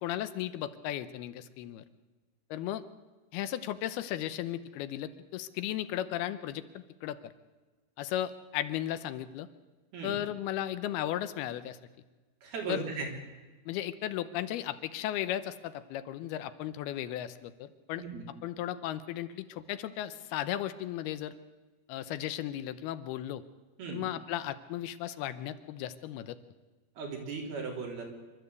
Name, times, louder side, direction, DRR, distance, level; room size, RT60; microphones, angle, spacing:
voice 1, 0.0-1.8 2.5-2.8 3.3-7.3 8.0-9.5 10.0-11.8 12.7-12.8 13.7-18.0 18.4-21.4 21.9-23.4 23.9-26.4, left 12 dB, 85° left, 12 dB, 2.8 m, -35 dB
voice 2, 12.4-13.1 18.0-18.2 23.8-24.0 27.0-28.2, right 4 dB, 75° right, 0 dB, 5.5 m, -37 dB
26.0 x 12.5 x 8.2 m, 1.3 s
omnidirectional pair, 4.4 m